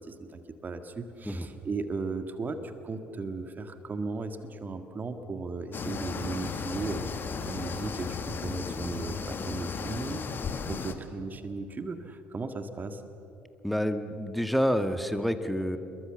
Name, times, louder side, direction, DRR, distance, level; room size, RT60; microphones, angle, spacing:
voice 1, 0.0-7.1 7.4-10.2 10.7-13.0, right 4 dB, 30° right, 8 dB, 1.9 m, -36 dB
sound 1, 5.7-10.9, left 5 dB, 40° left, 1.9 m, -35 dB
voice 2, 13.6-15.8, equal, ahead, 9 dB, 1.7 m, -28 dB
27.5 x 22.0 x 7.1 m, 2.9 s
figure-of-eight pair, 50°, 6 cm